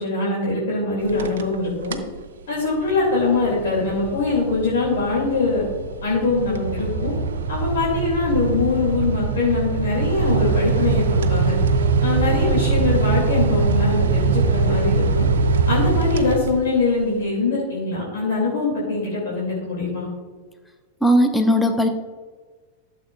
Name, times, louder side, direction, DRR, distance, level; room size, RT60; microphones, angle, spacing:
voice 1, 0.0-2.0 2.5-5.6 6.0-7.1 7.5-11.6 12.0-15.3 15.7-20.1, left 3 dB, 60° left, -5 dB, 2.7 m, -23 dB
sound 1, 1.0-1.6 1.8-2.2 2.6-16.9, right 4 dB, 65° right, 0.6 m, -22 dB
voice 2, 21.0-21.9, equal, 5° left, 6 dB, 0.8 m, -17 dB
12.5 x 7.0 x 2.5 m, 1.4 s
figure-of-eight pair, 90°, 0 cm